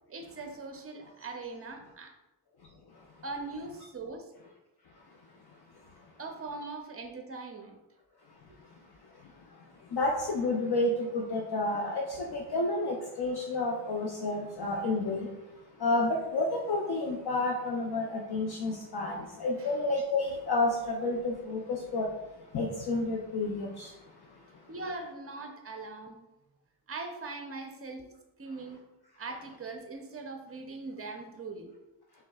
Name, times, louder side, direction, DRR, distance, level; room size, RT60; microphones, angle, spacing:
voice 1, 0.1-2.1 3.2-4.3 6.2-7.8 19.6-19.7 24.7-26.2 26.9-28.1 28.4-28.8 29.2-31.7, right 3 dB, 30° right, 4 dB, 0.6 m, -41 dB
voice 2, 9.9-15.3 15.8-22.1 22.5-23.9, left 2 dB, 50° left, -1 dB, 0.6 m, -30 dB
6.1 x 3.4 x 2.3 m, 1.0 s
wide cardioid pair, 130°, 49 cm